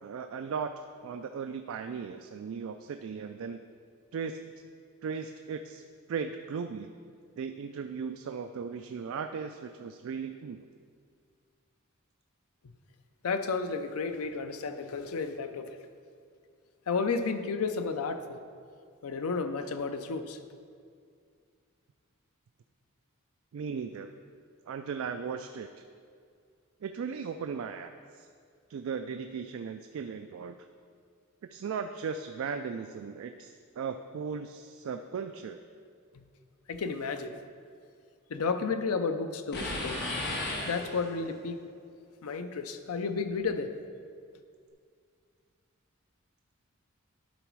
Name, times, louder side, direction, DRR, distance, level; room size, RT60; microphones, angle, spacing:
voice 1, 0.0-0.7 1.0-3.6 4.1-4.5 5.0-6.9 7.4-10.6 23.5-24.1 24.7-25.7 26.8-28.3 28.7-30.6 31.5-35.6, right 6 dB, 65° right, 7 dB, 0.3 m, -37 dB
voice 2, 13.2-15.7 16.9-18.4 19.0-20.4 36.7-37.3 38.3-40.0 40.7-41.6 42.2-43.8, left 4 dB, 85° left, 9 dB, 0.5 m, -32 dB
sound 1, 39.5-41.4, left 1 dB, 50° left, 1.1 m, -34 dB
11.5 x 4.1 x 4.6 m, 2.2 s
head